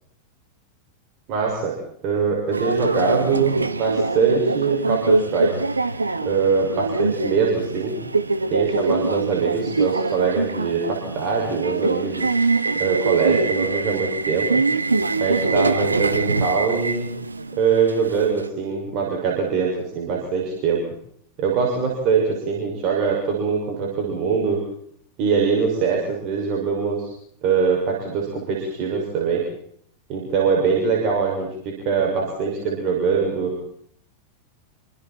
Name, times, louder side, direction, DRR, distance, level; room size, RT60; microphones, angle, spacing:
voice 1, 1.3-1.7 2.0-5.5 6.2-8.0 8.5-12.3 12.8-14.5 15.2-17.1 17.6-20.8 21.4-24.6 25.2-27.1 27.4-29.4 30.1-33.5, right 5 dB, 40° right, -1 dB, 6.4 m, -22 dB
Subway metro underground, 2.5-18.5, right 3 dB, 80° right, 1.2 m, -24 dB
28.0 x 26.0 x 4.6 m, 0.67 s
figure-of-eight pair, 90°, 0 cm